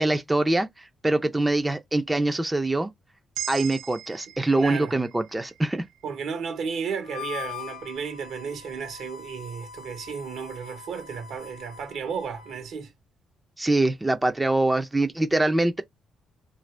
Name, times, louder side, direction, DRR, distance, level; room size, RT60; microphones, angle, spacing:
voice 1, 0.0-2.9 3.5-5.9 13.6-15.8, right 2 dB, 15° right, 0.5 m, -24 dB
sound 1, 3.3-7.6, right 11 dB, 90° right, 0.5 m, -41 dB
voice 2, 4.6-5.0 6.0-12.9, right 6 dB, 70° right, 1.0 m, -33 dB
Harmonica, 7.0-12.7, left 8 dB, 75° left, 0.6 m, -42 dB
2.7 x 2.5 x 3.2 m
cardioid pair, 90°, 0 cm